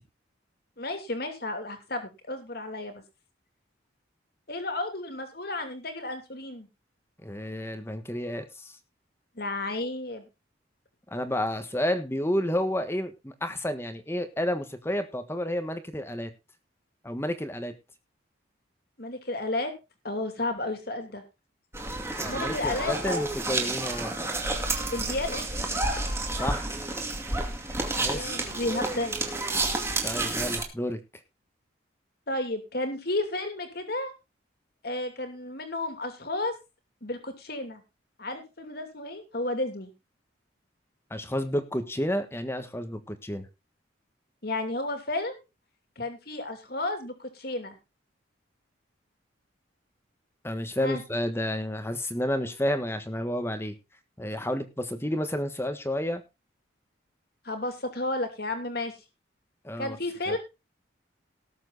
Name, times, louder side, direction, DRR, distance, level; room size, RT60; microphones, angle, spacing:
voice 1, 0.8-3.0 4.5-6.7 9.4-10.3 19.0-19.7 20.0-21.2 22.3-23.2 24.9-25.4 28.1-29.6 32.3-34.1 34.8-36.5 37.0-37.8 38.2-39.9 44.4-45.4 46.0-47.8 50.8-51.0 57.4-58.9 59.8-60.4, left 2 dB, 50° left, 7 dB, 2.7 m, -32 dB
voice 2, 7.2-8.7 11.1-16.3 17.0-17.7 22.2-24.1 26.4-26.7 28.0-28.5 30.0-31.0 41.1-43.5 50.4-53.7 54.2-56.2 59.6-60.0 60.3-60.4, left 1 dB, 10° left, 9 dB, 1.4 m, -30 dB
sound 1, 21.7-30.6, right 2 dB, 15° right, 2.3 m, -30 dB
18.5 x 7.4 x 4.0 m, 0.27 s
head